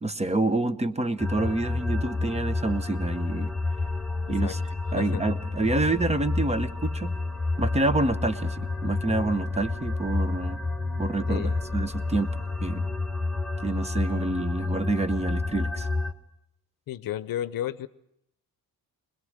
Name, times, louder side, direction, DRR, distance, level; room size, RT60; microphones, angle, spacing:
voice 1, 0.0-3.5 4.3-4.6 4.9-7.1 7.6-10.6 11.0-12.3 12.6-12.9 13.6-15.9, right 2 dB, 15° right, 0.9 m, -27 dB
sound 1, 1.2-16.1, left 3 dB, ahead, 1.6 m, -29 dB
voice 2, 11.3-11.6 16.9-17.9, left 12 dB, 65° left, 0.7 m, -32 dB
21.5 x 21.0 x 6.5 m
cardioid pair, 95°, 37 cm